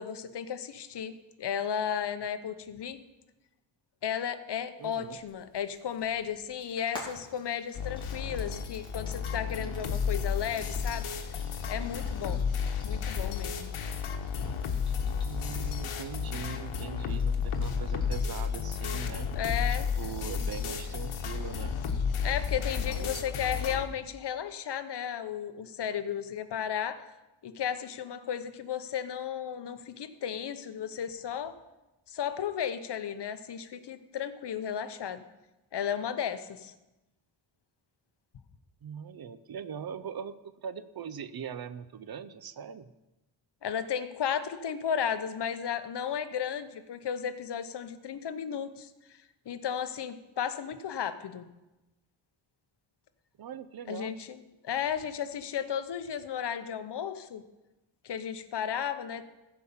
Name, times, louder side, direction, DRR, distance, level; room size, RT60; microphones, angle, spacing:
voice 1, 0.0-3.0 4.0-11.1 11.7-12.4 12.8-13.7 14.4-14.5 19.4-19.9 22.2-27.0 27.4-31.5 32.1-35.2 35.7-36.7 43.6-48.9 49.5-51.5 53.9-54.4 54.6-57.4 58.0-59.2, left 8 dB, 55° left, 11 dB, 0.9 m, -34 dB
Frying (food), 4.8-19.7, left 1 dB, 10° left, 3.2 m, -53 dB
voice 2, 4.8-5.2 14.5-14.6 15.1-19.3 19.7-21.8 22.9-23.3 38.8-42.9 53.4-54.1, right 7 dB, 50° right, 14 dB, 0.6 m, -41 dB
sound 1, 7.7-23.9, left 6 dB, 80° left, 1.2 m, -32 dB
15.0 x 5.4 x 7.0 m, 1.0 s
cardioid pair, 115°, 49 cm